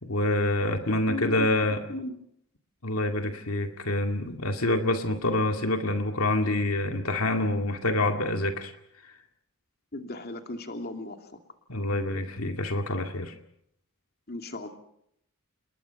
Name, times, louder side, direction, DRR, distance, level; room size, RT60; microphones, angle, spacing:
voice 1, 0.0-1.8 2.8-8.7 11.7-13.3, left 1 dB, 70° left, 5 dB, 2.2 m, -27 dB
voice 2, 0.9-1.5 1.9-2.2 9.9-11.3 14.3-14.7, left 2 dB, 45° left, 5 dB, 2.6 m, -36 dB
28.5 x 21.5 x 5.8 m, 0.73 s
head